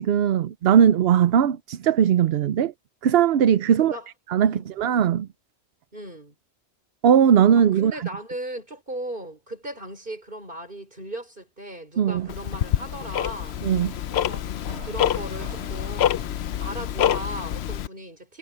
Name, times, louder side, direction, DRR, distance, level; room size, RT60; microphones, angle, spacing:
voice 1, 0.0-2.7 3.0-4.0 4.3-5.3 7.0-7.9 12.0-12.3 13.6-13.9, right 8 dB, 65° right, 0.8 m, -19 dB
voice 2, 4.4-4.7 5.9-6.3 7.6-13.6 14.1-14.5 14.8-16.2 16.6-18.4, right 1 dB, 50° right, 5.6 m, -37 dB
sound 1, 12.1-17.4, right 1 dB, 85° right, 5.7 m, -46 dB
Tick-tock, 12.3-17.9, left 11 dB, 75° left, 0.8 m, -27 dB
omnidirectional pair, 1.1 m